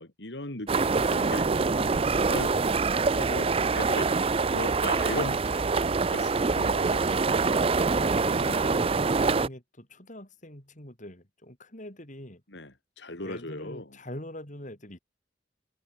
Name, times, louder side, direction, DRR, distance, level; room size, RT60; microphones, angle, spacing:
voice 1, 0.0-2.0 2.3-4.2 4.5-7.0 8.0-8.1 8.4-8.7 12.5-14.0, left 2 dB, 80° left, 3.4 m, -38 dB
sound 1, 0.7-9.5, right 4 dB, 35° right, 0.5 m, -25 dB
voice 2, 1.5-2.3 6.7-7.2 8.0-8.9 9.2-12.4 13.2-15.0, left 1 dB, 45° left, 7.9 m, -43 dB
head